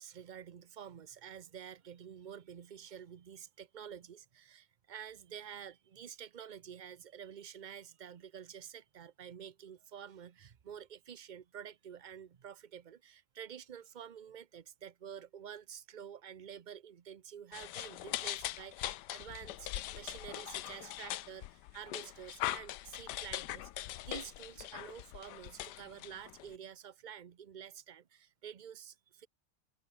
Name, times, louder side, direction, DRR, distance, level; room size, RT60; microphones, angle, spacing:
voice 1, 0.0-29.3, right 8 dB, 65° right, 0.4 m, -49 dB
sound 1, 17.5-26.5, left 15 dB, 85° left, 1.2 m, -41 dB
open air
omnidirectional pair, 1.8 m